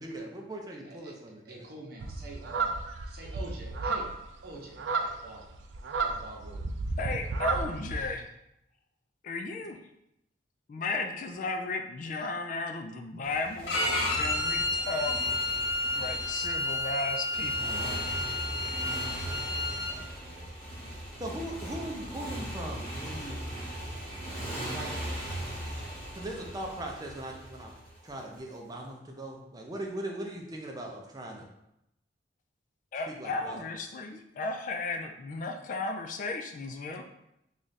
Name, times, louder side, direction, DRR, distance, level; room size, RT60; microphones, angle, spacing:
voice 1, 0.0-1.7 19.0-19.3 19.6-20.5 21.2-23.4 24.7-24.9 26.2-27.7 28.0-31.5 33.1-33.7, right 1 dB, 20° right, 0 dB, 0.5 m, -40 dB
voice 2, 1.4-4.1 4.4-5.4 6.0-6.6 7.5-7.6, right 2 dB, 55° right, -1 dB, 0.8 m, -46 dB
sound 1, 2.0-8.1, right 3 dB, 90° right, 0.4 m, -33 dB
voice 3, 7.0-8.3 9.2-9.8 10.7-15.1 15.9-18.0 32.9-37.0, left 3 dB, 45° left, 5 dB, 0.3 m, -35 dB
Motorcycle, 13.2-28.4, right 1 dB, 10° left, 1.4 m, -39 dB
Bowed string instrument, 13.7-19.9, left 2 dB, 70° left, 0.7 m, -31 dB
3.2 x 2.4 x 4.0 m, 0.83 s
head